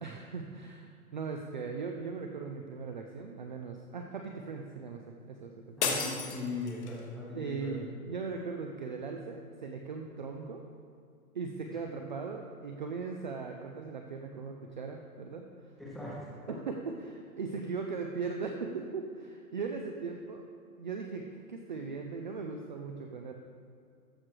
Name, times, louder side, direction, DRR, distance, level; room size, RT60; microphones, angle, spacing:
voice 1, 0.0-6.0 7.3-10.6 11.3-15.4 16.5-20.4 20.8-23.3, right 4 dB, 35° right, 3 dB, 0.4 m, -39 dB
sound 1, 5.8-7.1, left 6 dB, 50° left, 1.2 m, -33 dB
voice 2, 5.8-7.8 11.7-11.8 15.8-16.2, left 3 dB, ahead, -7 dB, 0.9 m, -39 dB
13.5 x 4.7 x 4.7 m, 2.4 s
hypercardioid pair, 165°, 44 cm